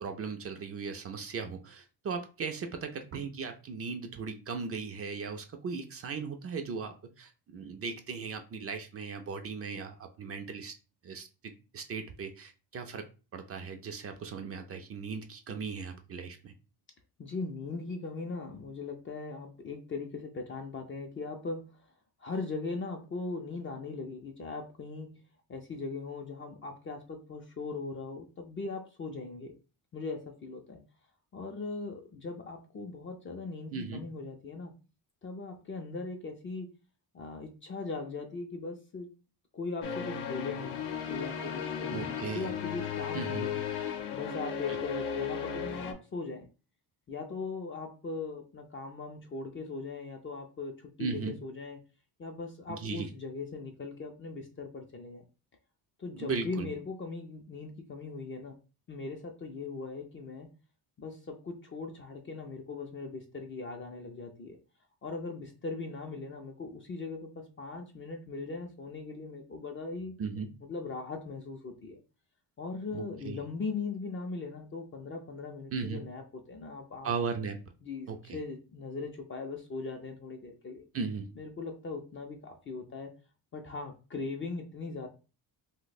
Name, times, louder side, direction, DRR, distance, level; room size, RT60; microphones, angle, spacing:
voice 1, 0.0-10.7 11.0-13.0 13.3-16.5 33.7-34.0 41.9-42.5 43.1-43.5 44.7-44.8 51.0-51.3 52.7-53.1 56.2-56.7 70.2-70.5 72.9-73.4 75.7-76.0 77.0-77.6 78.1-78.4 80.9-81.3, right 5 dB, 40° right, 5 dB, 0.4 m, -37 dB
voice 2, 17.2-21.7 22.2-25.1 25.5-29.5 29.9-30.8 31.3-34.7 35.2-36.7 37.1-39.1 39.5-40.8 41.1-43.5 44.1-46.5 47.1-51.8 52.2-55.2 56.0-58.6 58.9-60.5 61.0-64.6 65.0-70.1 70.6-72.0 72.6-77.1 77.8-80.8 81.4-83.1 83.5-85.1, left 3 dB, 30° left, 3 dB, 0.4 m, -39 dB
sound 1, 39.8-45.9, left 7 dB, 85° left, 0.7 m, -35 dB
2.7 x 2.1 x 4.0 m, 0.33 s
cardioid pair, 145°, 39 cm